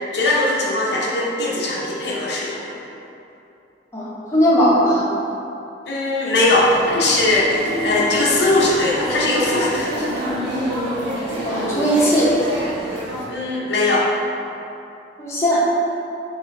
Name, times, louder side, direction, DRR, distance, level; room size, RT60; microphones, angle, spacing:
voice 1, 0.1-2.7 5.9-10.1 13.3-14.1, left 2 dB, 65° left, -5 dB, 0.6 m, -20 dB
voice 2, 3.9-5.0 11.4-12.3 15.2-15.6, equal, 15° left, -9 dB, 0.7 m, -18 dB
sound 1, 6.4-13.2, equal, 80° right, 1.0 m, -27 dB
3.7 x 3.1 x 3.6 m, 2.8 s
head